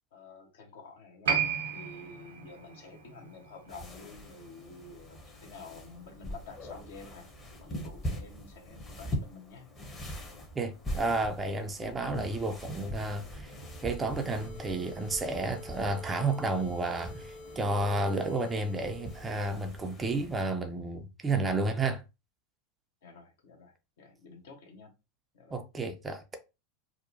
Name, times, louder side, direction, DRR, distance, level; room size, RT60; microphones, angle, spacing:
voice 1, 0.1-7.3 7.6-9.7 23.0-24.9 25.3-25.6, left 4 dB, 65° left, 0.9 m, -50 dB
Piano, 1.3-8.2 8.5-8.6, right 7 dB, 65° right, 0.6 m, -36 dB
sound 1, 3.7-20.4, equal, 20° left, 0.8 m, -42 dB
voice 2, 10.6-13.5 13.8-22.0 25.5-26.4, right 2 dB, 20° right, 0.4 m, -31 dB
sound 2, 13.5-19.6, left 2 dB, 85° left, 1.1 m, -49 dB
2.8 x 2.1 x 2.6 m
figure-of-eight pair, 85°, 0 cm